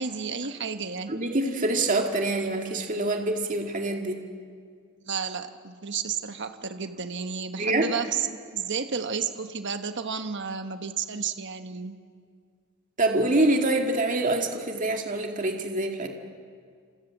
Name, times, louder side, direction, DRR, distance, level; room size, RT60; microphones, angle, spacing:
voice 1, 0.0-1.1 5.0-12.0, right 6 dB, 55° right, 8 dB, 1.3 m, -32 dB
voice 2, 1.1-4.2 7.6-7.9 13.0-16.1, right 2 dB, 40° right, 3 dB, 2.2 m, -25 dB
27.5 x 27.5 x 7.4 m, 2.1 s
head